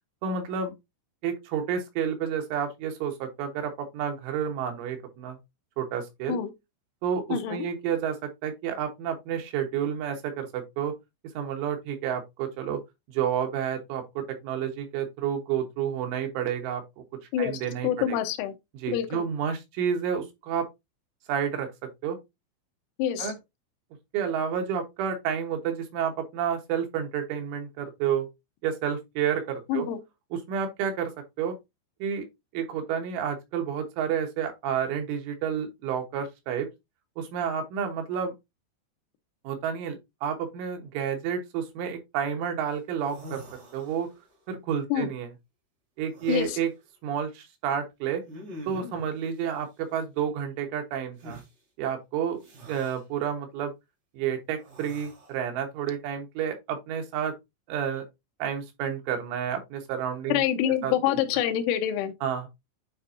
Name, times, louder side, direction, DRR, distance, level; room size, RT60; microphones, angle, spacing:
voice 1, 0.2-0.7 1.2-5.4 5.8-6.4 7.0-10.9 11.4-12.8 13.1-14.0 14.4-16.8 17.4-18.2 18.7-20.7 21.3-21.7 22.0-22.2 23.2-23.3 24.1-28.3 28.6-29.9 30.3-31.1 31.4-31.6 32.0-32.2 32.5-36.7 37.2-38.3 39.5-43.4 43.7-44.1 44.5-45.3 46.0-46.7 47.0-48.2 48.7-51.4 51.8-52.4 52.7-53.7 54.2-57.3 57.7-58.0 58.4-60.4 60.8-61.2 62.2-62.5, right 8 dB, 80° right, 3.7 m, -30 dB
voice 2, 7.3-7.7 17.3-18.5 18.9-19.2 23.0-23.3 29.7-30.0 44.9-45.1 46.3-46.6 60.3-62.1, left 10 dB, 80° left, 3.2 m, -26 dB
sound 1, 42.7-42.8 43.0-44.3 46.1-46.7 48.3-49.1 51.2-51.5 52.4-53.0 54.6-55.4, equal, 45° right, 3.3 m, -44 dB
9.8 x 4.0 x 2.7 m
omnidirectional pair, 5.7 m